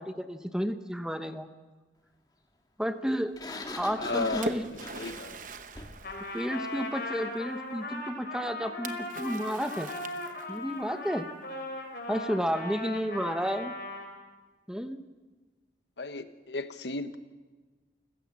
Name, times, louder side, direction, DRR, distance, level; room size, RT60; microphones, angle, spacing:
voice 1, 0.0-1.5 2.8-3.3 3.8-4.7 6.3-9.9 10.5-11.3 12.1-13.7 14.7-15.0, equal, 5° right, 9 dB, 0.9 m, -31 dB
Sliding door, 3.4-6.1, left 2 dB, 25° left, 1.8 m, -41 dB
Splash splatter, 3.9-7.1 8.9-10.8, right 3 dB, 50° right, 1.0 m, -42 dB
voice 2, 4.0-4.5 4.9-5.4 16.0-17.2, left 3 dB, 80° left, 11 dB, 1.2 m, -34 dB
Trumpet, 6.0-14.1, left 2 dB, 55° left, 4.0 m, -38 dB
29.0 x 15.5 x 7.4 m, 1.3 s
head